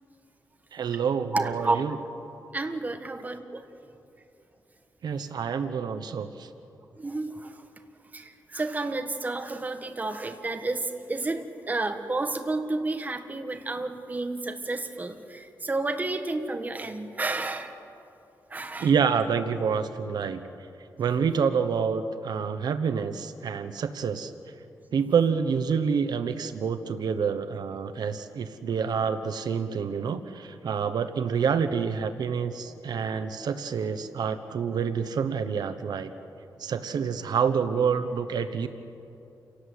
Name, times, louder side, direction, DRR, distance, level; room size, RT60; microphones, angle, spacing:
voice 1, 0.7-1.9 5.0-6.5 18.8-20.4 21.0-24.3 24.9-36.1 36.6-38.7, right 6 dB, 75° right, 9 dB, 1.0 m, -27 dB
voice 2, 1.3-1.8 2.5-3.6 7.0-7.6 8.1-17.8 18.5-18.9, right 2 dB, 25° right, 6 dB, 1.7 m, -31 dB
29.0 x 18.0 x 8.1 m, 2.7 s
wide cardioid pair, 140°, 7 cm